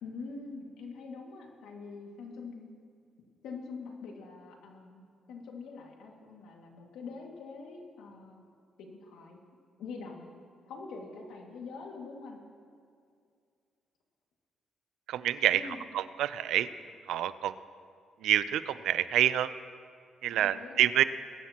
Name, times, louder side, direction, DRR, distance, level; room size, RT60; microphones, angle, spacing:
voice 1, 0.0-2.7 3.4-5.0 5.3-8.5 8.8-9.4 9.8-10.3 10.7-12.4 15.5-15.8 20.3-21.0, left 4 dB, 85° left, 0 dB, 2.0 m, -44 dB
voice 2, 15.1-15.7 15.9-16.7 17.1-17.5 18.2-19.5 20.2-21.0, right 11 dB, 80° right, 15 dB, 0.4 m, -27 dB
21.5 x 11.5 x 2.9 m, 2.3 s
cardioid pair, 90°, 0 cm